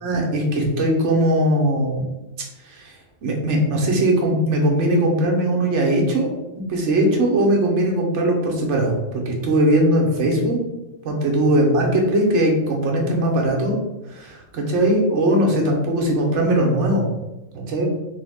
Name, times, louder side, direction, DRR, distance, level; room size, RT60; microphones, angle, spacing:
voice 1, 0.0-2.1 2.7-2.9 3.2-6.3 6.7-9.0 9.3-10.6 11.0-13.8 14.1-17.1 17.7-17.9, right 1 dB, 70° right, 0 dB, 1.0 m, -19 dB
3.4 x 2.0 x 3.5 m, 1.0 s
omnidirectional pair, 1.3 m